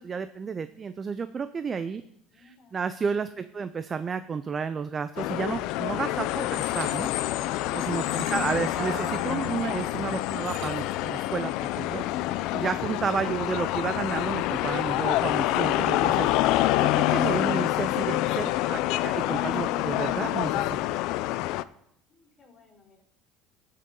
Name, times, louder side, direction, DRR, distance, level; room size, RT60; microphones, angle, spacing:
voice 1, 0.0-2.0 2.3-7.1 7.7-12.0 12.5-20.8, right 5 dB, 30° right, 11 dB, 0.5 m, -32 dB
voice 2, 2.3-2.8 3.3-3.6 22.1-23.0, left 4 dB, 35° left, -6 dB, 5.0 m, -58 dB
sound 1, 5.2-21.6, left 15 dB, 70° left, 0.4 m, -27 dB
sound 2, 6.4-11.4, right 7 dB, 75° right, 1.6 m, -52 dB
sound 3, 8.8-11.0, right 9 dB, 45° right, 1.2 m, -42 dB
18.5 x 6.6 x 3.8 m, 0.74 s
cardioid pair, 120°, 0 cm